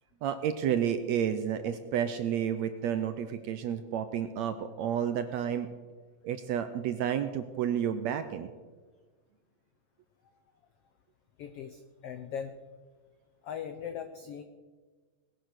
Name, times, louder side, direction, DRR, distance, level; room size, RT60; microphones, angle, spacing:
voice 1, 0.2-5.7 6.2-8.5, right 9 dB, 75° right, 10 dB, 1.7 m, -31 dB
voice 2, 11.4-12.5 13.4-14.4, left 8 dB, 85° left, 9 dB, 1.3 m, -39 dB
19.5 x 10.5 x 6.6 m, 1.4 s
omnidirectional pair, 3.8 m